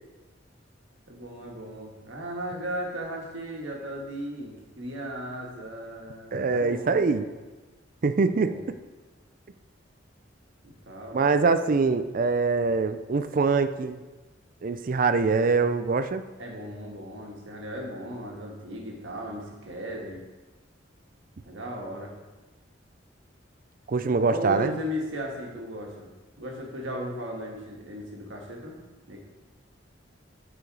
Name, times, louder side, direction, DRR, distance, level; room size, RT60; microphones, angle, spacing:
voice 1, 1.1-7.2 8.3-8.6 10.6-11.3 16.4-20.2 21.4-22.1 24.3-26.1 26.4-28.7 29.1-29.2, equal, 80° right, -1 dB, 1.7 m, -36 dB
voice 2, 6.3-7.2 8.0-8.5 11.1-14.0 14.6-16.2 23.9-24.8, right 4 dB, 45° right, 11 dB, 0.4 m, -24 dB
8.7 x 5.0 x 4.9 m, 1.2 s
head